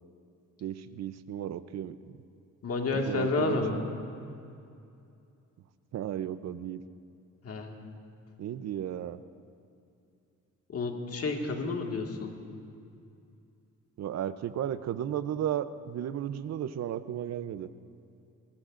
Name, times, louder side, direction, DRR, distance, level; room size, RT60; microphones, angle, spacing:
voice 1, 0.6-2.0 2.9-3.8 5.9-6.8 8.4-9.2 14.0-17.7, right 10 dB, 60° right, 13 dB, 0.7 m, -34 dB
voice 2, 2.6-3.8 7.4-7.7 10.7-12.3, left 3 dB, 50° left, 2 dB, 1.9 m, -30 dB
23.5 x 20.5 x 2.6 m, 2.5 s
cardioid pair, 90°, 30 cm